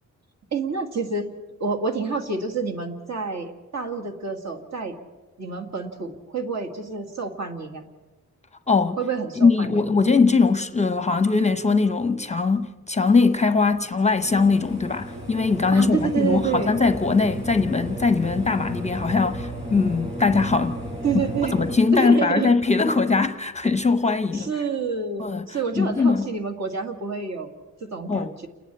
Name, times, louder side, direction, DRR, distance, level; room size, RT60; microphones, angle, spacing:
voice 1, 0.5-1.3 1.6-4.9 5.4-7.8 9.0-9.9 15.7-16.7 21.0-21.5 21.9-22.5 24.3-27.5 27.8-28.5, right 4 dB, 55° right, 2.1 m, -28 dB
voice 2, 8.7-9.0 9.4-20.8 21.5-24.5 25.2-25.5 25.8-26.3 28.1-28.3, left 4 dB, 20° left, 0.7 m, -21 dB
sound 1, 13.9-21.8, right 1 dB, 20° right, 5.0 m, -34 dB
29.5 x 10.0 x 9.9 m
wide cardioid pair, 165°, 32 cm